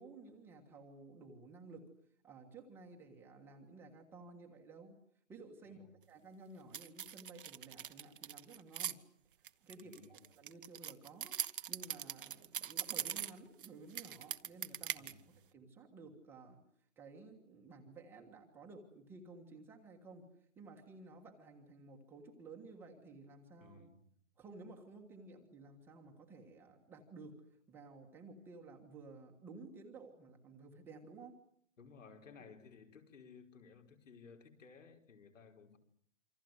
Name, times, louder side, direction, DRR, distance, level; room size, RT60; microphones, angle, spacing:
voice 1, 0.0-1.8 2.2-5.0 5.3-9.0 9.4-11.3 11.7-15.1 15.5-23.9 24.4-31.3, right 3 dB, 5° right, 1 dB, 1.4 m, -54 dB
voice 2, 5.6-6.0 9.8-10.2 15.0-15.4 23.6-24.0 31.8-35.8, left 5 dB, 65° left, 5 dB, 5.4 m, -58 dB
sound 1, 6.7-8.9 9.4-13.7 13.9-15.1, right 9 dB, 40° right, 1.1 m, -41 dB
27.5 x 26.0 x 8.0 m, 0.65 s
hypercardioid pair, 170°, 41 cm